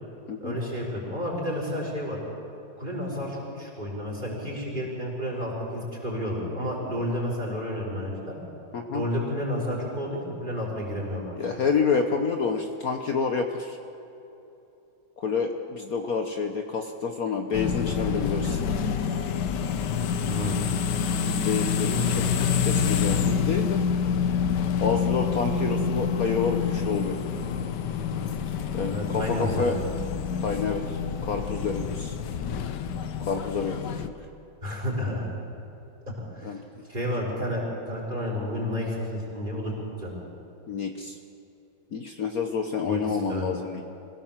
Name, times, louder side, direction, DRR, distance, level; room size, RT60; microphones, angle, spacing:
voice 1, 0.4-2.2 2.8-8.4 8.9-11.4 20.2-20.7 21.8-22.3 28.9-29.8 34.6-35.3 36.3-36.6 36.9-39.7 40.0-40.1 42.8-43.5, equal, 25° right, -3 dB, 5.4 m, -31 dB
voice 2, 8.7-9.0 11.4-13.8 15.2-18.6 21.3-22.2 22.6-23.8 24.8-27.2 28.7-29.8 30.4-32.2 33.2-34.1 36.4-36.9 40.7-41.2 41.9-43.9, left 5 dB, 55° left, 4 dB, 1.4 m, -28 dB
sound 1, 17.5-34.1, left 6 dB, 70° left, 1.5 m, -27 dB
24.5 x 17.0 x 7.5 m, 2.9 s
omnidirectional pair, 2.0 m